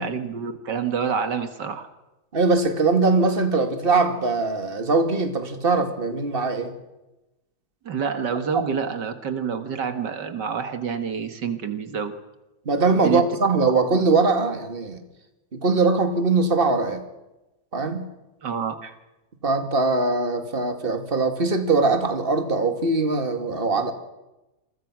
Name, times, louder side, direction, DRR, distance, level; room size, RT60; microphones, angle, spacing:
voice 1, 0.0-1.9 7.9-12.1 12.9-13.2 18.4-18.8, right 6 dB, 85° right, 9 dB, 2.3 m, -27 dB
voice 2, 2.3-6.8 12.7-15.0 15.5-17.0 17.7-18.1 19.4-23.9, right 3 dB, 30° right, 7 dB, 2.4 m, -21 dB
28.5 x 23.0 x 6.2 m, 1.0 s
omnidirectional pair, 1.8 m